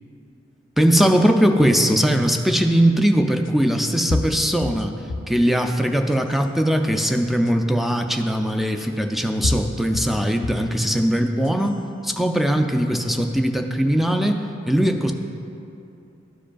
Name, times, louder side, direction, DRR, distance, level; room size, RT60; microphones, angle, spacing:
voice 1, 0.8-4.9 5.3-11.8 12.0-15.1, equal, ahead, 4 dB, 0.3 m, -20 dB
sound 1, 2.1-2.2 3.4-3.5 4.1-5.4 5.9-6.5 7.4-7.5 8.8-8.9 9.4-10.7 11.3-11.8, left 2 dB, 90° left, 0.3 m, -29 dB
12.5 x 4.9 x 2.3 m, 2.7 s
head